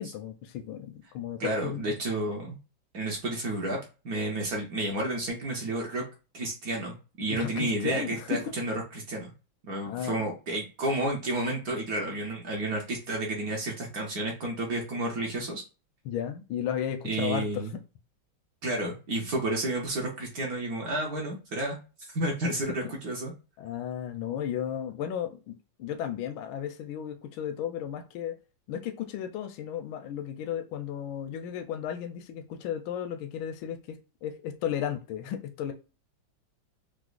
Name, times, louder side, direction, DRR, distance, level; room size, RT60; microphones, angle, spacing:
voice 1, 0.0-1.9 7.3-8.5 9.9-10.3 16.0-17.8 23.6-28.4 28.7-35.7, left 9 dB, 85° left, 1.4 m, -34 dB
voice 2, 1.4-2.6 2.9-3.8 4.0-6.0 6.3-9.3 9.6-15.6 17.0-17.7 18.6-21.8 22.1-23.3, right 1 dB, 60° right, 1.1 m, -31 dB
5.0 x 2.0 x 2.4 m
omnidirectional pair, 2.2 m